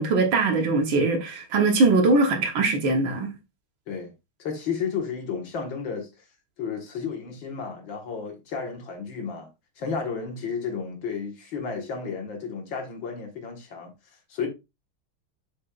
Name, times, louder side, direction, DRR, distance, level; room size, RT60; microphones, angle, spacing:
voice 1, 0.0-3.3, right 3 dB, 65° right, 1.9 m, -21 dB
voice 2, 4.4-6.2 6.6-9.5 9.8-13.9 14.3-14.5, left 6 dB, 65° left, 2.1 m, -32 dB
6.9 x 6.3 x 2.4 m
omnidirectional pair, 2.3 m